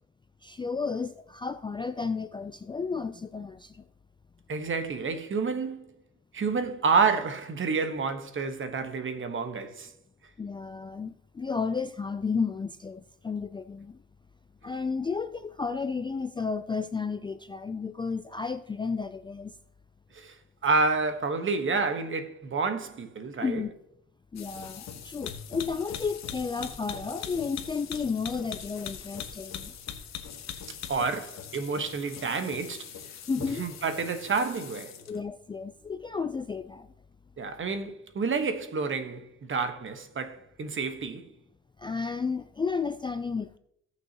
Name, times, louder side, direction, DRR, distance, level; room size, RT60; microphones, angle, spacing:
voice 1, 0.4-3.8 10.4-14.0 14.6-19.5 23.4-23.7 24.3-29.7 30.5-30.9 33.3-33.6 35.1-36.9 41.8-43.6, left 5 dB, 15° left, 0.3 m, -32 dB
voice 2, 4.5-5.8 6.3-9.9 20.1-20.4 20.6-23.6 30.9-32.9 33.6-34.9 37.4-41.2, right 4 dB, 40° right, 1.2 m, -29 dB
sound 1, 24.4-35.2, left 8 dB, 60° left, 1.2 m, -41 dB
17.0 x 6.3 x 2.9 m
cardioid pair, 90°, 30 cm